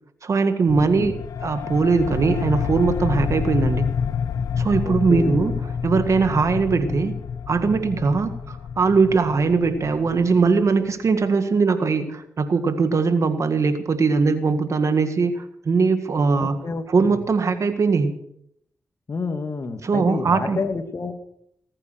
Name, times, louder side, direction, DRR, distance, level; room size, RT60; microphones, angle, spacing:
voice 1, 0.2-3.9 4.6-5.5 5.8-7.2 7.5-16.6 16.9-18.1 19.8-20.6, right 4 dB, 65° right, 9 dB, 1.8 m, -20 dB
sound 1, 0.7-10.9, left 7 dB, 85° left, 0.8 m, -28 dB
voice 2, 0.8-1.2 4.8-5.4 16.4-17.2 19.1-21.1, left 4 dB, 55° left, 7 dB, 2.2 m, -29 dB
19.5 x 8.9 x 6.5 m, 0.73 s
supercardioid pair, 45°, 6 cm